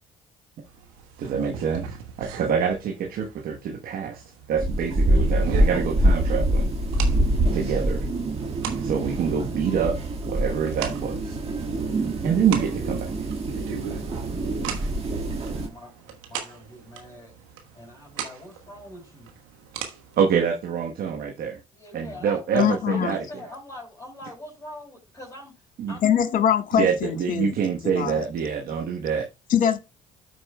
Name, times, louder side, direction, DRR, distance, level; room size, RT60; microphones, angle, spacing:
sound 1, 0.6-20.5, right 8 dB, 85° right, 1.3 m, -40 dB
voice 1, 1.2-4.2 4.5-6.7 7.5-8.1 8.8-10.0 10.2-11.4 12.2-13.3 20.2-21.6 21.9-23.2 25.8-26.0 26.8-29.3, right 7 dB, 60° right, 1.1 m, -26 dB
sound 2, 4.6-15.7, right 1 dB, 35° right, 1.7 m, -25 dB
voice 2, 15.5-17.4 17.7-19.4 21.7-25.6 25.9-26.0, left 1 dB, 20° left, 4.3 m, -43 dB
voice 3, 22.5-23.1 26.0-27.6 27.9-28.2 29.5-29.8, left 9 dB, 55° left, 1.4 m, -22 dB
13.5 x 4.7 x 2.2 m
hypercardioid pair, 60°, 17 cm